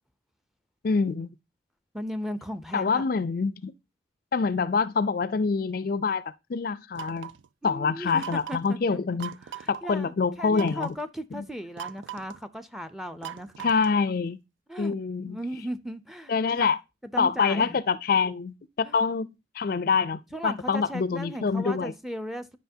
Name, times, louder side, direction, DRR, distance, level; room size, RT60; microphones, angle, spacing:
voice 1, 0.8-1.3 2.7-3.7 4.3-6.2 6.5-7.3 7.6-9.4 9.7-11.0 11.3-11.4 13.6-14.4 14.8-15.4 16.3-16.8 17.2-19.3 19.5-21.9, left 5 dB, 50° left, 0.4 m, -26 dB
voice 2, 1.9-3.0 7.6-13.7 14.7-15.0 15.2-16.3 16.6-16.8 17.1-17.8 18.8-19.0 20.3-22.6, equal, ahead, 0.5 m, -37 dB
sound 1, 6.9-7.5 8.2-8.7 9.2-9.8 10.5-11.0 11.8-12.4 13.2-14.1, right 9 dB, 75° right, 0.4 m, -40 dB
10.0 x 5.9 x 2.7 m
head